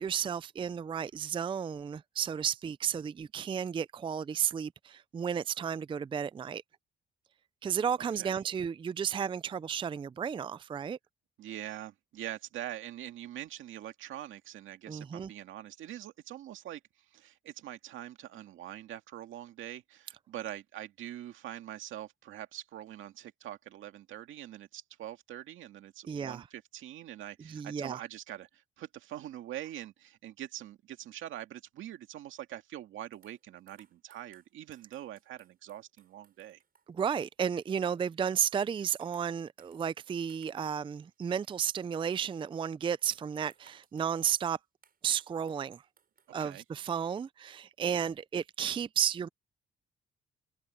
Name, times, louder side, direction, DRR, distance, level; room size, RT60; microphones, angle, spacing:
voice 1, 0.0-6.6 7.6-11.0 14.9-15.3 26.1-26.4 27.5-28.0 36.9-44.6 45.0-45.8 46.3-49.3, right 8 dB, 25° right, 0.4 m, -33 dB
voice 2, 11.4-16.8 17.1-36.6 46.4-46.6, right 12 dB, 80° right, 2.1 m, -44 dB
sound 1, 33.1-38.7 39.0-40.7 41.0-42.4 43.0-44.5 44.8-47.0, right 6 dB, 50° right, 6.7 m, -67 dB
cardioid pair, 90°, 20 cm